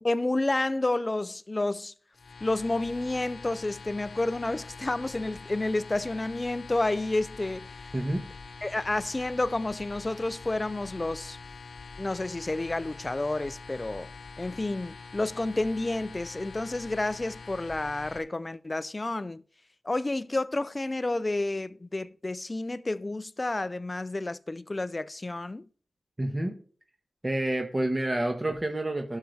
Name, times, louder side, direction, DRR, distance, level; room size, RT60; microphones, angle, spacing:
voice 1, 0.0-1.9 2.4-7.9 8.6-11.4 12.0-14.1 14.4-19.4 19.8-25.7, left 2 dB, 30° left, 0.4 m, -30 dB
sound 1, 2.1-18.2, left 4 dB, 65° left, 0.9 m, -45 dB
voice 2, 26.2-26.5 27.2-29.2, right 1 dB, 25° right, 1.3 m, -28 dB
12.5 x 6.4 x 3.4 m
wide cardioid pair, 70°, 0 cm